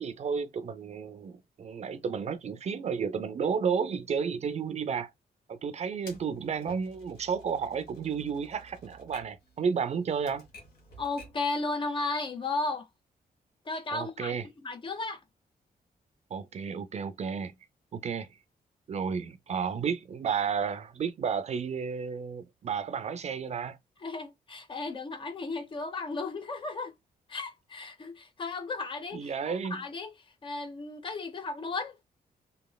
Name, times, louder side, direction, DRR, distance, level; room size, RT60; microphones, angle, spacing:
voice 1, 0.0-5.1 5.5-10.5 13.9-14.5 16.3-17.5 17.9-18.3 18.9-23.8 29.1-29.8, right 6 dB, 45° right, 0.4 m, -32 dB
Typewriter, 6.1-11.5, equal, 85° left, 1.4 m, -53 dB
voice 2, 11.0-12.9 13.7-15.2 24.0-26.9 27.3-30.1 30.4-32.0, left 3 dB, 35° left, 0.6 m, -35 dB
3.0 x 2.8 x 2.2 m
wide cardioid pair, 145°, 16 cm